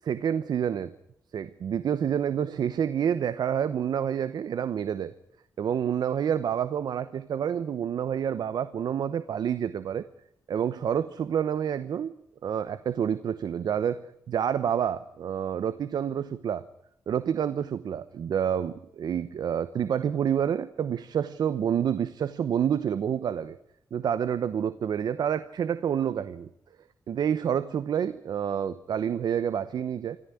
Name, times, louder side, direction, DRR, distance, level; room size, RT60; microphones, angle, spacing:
voice 1, 0.0-0.9 1.3-5.1 5.6-10.0 10.5-12.1 12.4-16.7 17.1-23.6 23.9-26.5 27.1-30.2, right 8 dB, 75° right, 14 dB, 0.9 m, -28 dB
26.0 x 13.5 x 9.8 m, 0.75 s
wide cardioid pair, 130°, 7 cm